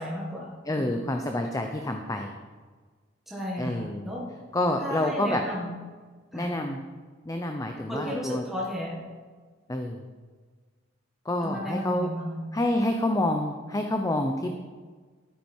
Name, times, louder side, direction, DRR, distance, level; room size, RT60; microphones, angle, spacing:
voice 1, 0.0-0.9 3.3-4.3 4.8-5.8 6.3-6.6 7.9-9.0 11.4-12.5, equal, ahead, -4 dB, 1.7 m, -34 dB
voice 2, 0.7-2.3 3.6-4.2 4.5-5.4 6.3-6.8 7.3-8.4 9.7-10.0 11.2-12.1 12.5-14.6, left 1 dB, 15° left, 4 dB, 0.7 m, -28 dB
12.5 x 9.2 x 4.5 m, 1.4 s
head